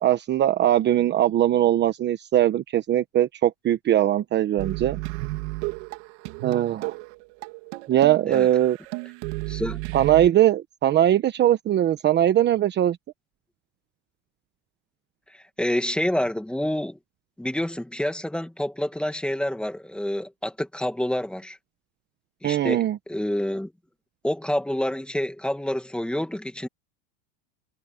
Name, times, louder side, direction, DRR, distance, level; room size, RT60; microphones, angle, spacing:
voice 1, 0.0-5.0 6.4-6.9 7.9-8.8 9.9-13.0 22.4-23.0, right 12 dB, 25° right, 1.1 m, -21 dB
sound 1, 4.6-10.3, right 23 dB, 60° right, 2.7 m, -33 dB
voice 2, 9.5-9.8 15.3-17.0 17.4-21.6 22.4-23.7 24.2-26.7, left 1 dB, ahead, 1.9 m, -28 dB
supercardioid pair, 140°, 39 cm